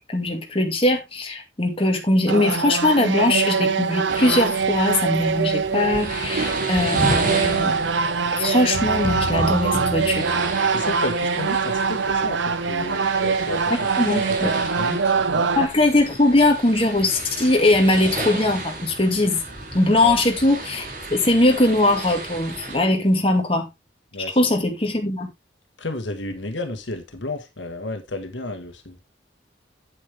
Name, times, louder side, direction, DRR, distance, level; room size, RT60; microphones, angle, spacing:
voice 1, 0.1-7.7 8.3-10.3 13.7-14.5 15.6-19.4 19.7-23.7 24.4-25.3, left 2 dB, 30° left, 2.2 m, -20 dB
sound 1, 2.3-15.7, right 5 dB, 85° right, 0.8 m, -23 dB
sound 2, 4.1-22.8, right 2 dB, 45° right, 3.1 m, -33 dB
sound 3, 8.7-11.0, left 3 dB, 50° left, 0.6 m, -31 dB
voice 2, 10.7-13.9 14.4-15.5 20.0-20.1 24.1-24.5 25.8-29.0, left 2 dB, 85° left, 1.6 m, -32 dB
8.5 x 8.3 x 3.5 m
head